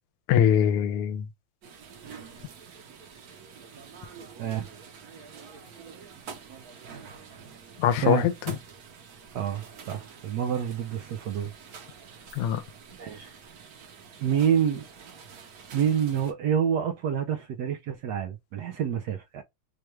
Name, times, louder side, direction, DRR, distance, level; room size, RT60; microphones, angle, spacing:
voice 1, 0.3-1.3 7.8-8.6 12.3-12.6, left 9 dB, 85° left, 1.5 m, -23 dB
sound 1, 1.6-16.3, right 6 dB, 60° right, 1.0 m, -47 dB
voice 2, 9.3-11.5 13.0-13.3 14.2-14.8 15.7-19.4, right 8 dB, 90° right, 0.8 m, -27 dB
4.7 x 2.3 x 3.1 m
omnidirectional pair, 2.4 m